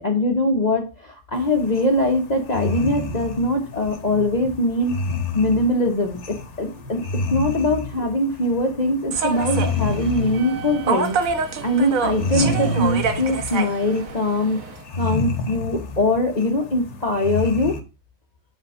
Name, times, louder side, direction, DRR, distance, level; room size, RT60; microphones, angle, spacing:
voice 1, 0.0-4.9 5.3-7.0 7.3-14.6 15.0-17.8, left 1 dB, 35° left, 2 dB, 0.9 m, -22 dB
sound 1, 1.4-17.8, left 3 dB, 60° left, 1.2 m, -30 dB
sound 2, 2.8-4.7 5.3-7.4 7.9-8.2 8.8-11.0 11.2-14.1, equal, 70° right, 1.7 m, -41 dB
Human voice / Subway metro underground, 9.1-14.8, right 5 dB, 85° right, 1.3 m, -27 dB
8.1 x 3.5 x 5.3 m, 0.31 s
omnidirectional pair, 1.4 m